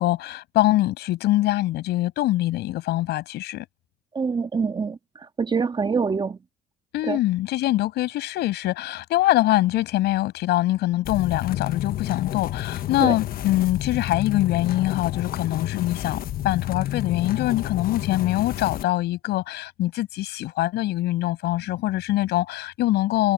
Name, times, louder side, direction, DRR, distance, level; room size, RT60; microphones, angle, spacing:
voice 1, 0.0-3.7 6.9-16.2 16.4-23.3, left 16 dB, 80° left, 6.8 m, -23 dB
voice 2, 4.2-5.0 5.4-6.4 7.1-7.2 13.0-13.2, right 5 dB, 25° right, 1.7 m, -24 dB
sound 1, 11.0-18.8, left 13 dB, 60° left, 1.1 m, -30 dB
cardioid pair, 110°, 17 cm